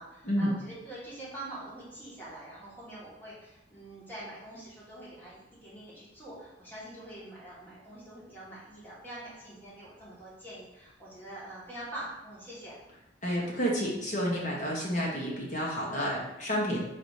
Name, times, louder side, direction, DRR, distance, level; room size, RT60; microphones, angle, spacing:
voice 1, 0.0-12.8, right 1 dB, 10° left, -8 dB, 1.5 m, -45 dB
voice 2, 13.2-16.8, equal, 45° left, -4 dB, 1.2 m, -30 dB
3.9 x 2.8 x 4.8 m, 0.94 s
head